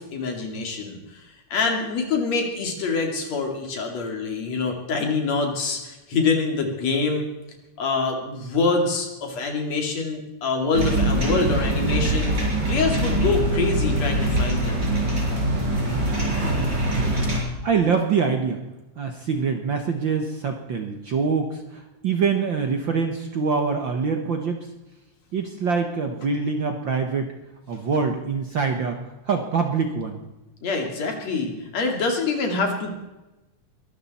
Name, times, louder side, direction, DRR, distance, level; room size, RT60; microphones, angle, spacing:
voice 1, 0.0-7.3 7.8-14.9 30.6-32.9, left 4 dB, 65° left, 3 dB, 3.6 m, -25 dB
sound 1, 10.7-17.4, right 1 dB, 35° right, 5.8 m, -23 dB
voice 2, 17.6-18.6 19.0-24.7 25.3-27.3 27.7-29.0 29.2-30.2, right 5 dB, 55° right, 5 dB, 1.5 m, -24 dB
22.0 x 13.0 x 4.2 m, 1.0 s
omnidirectional pair, 3.3 m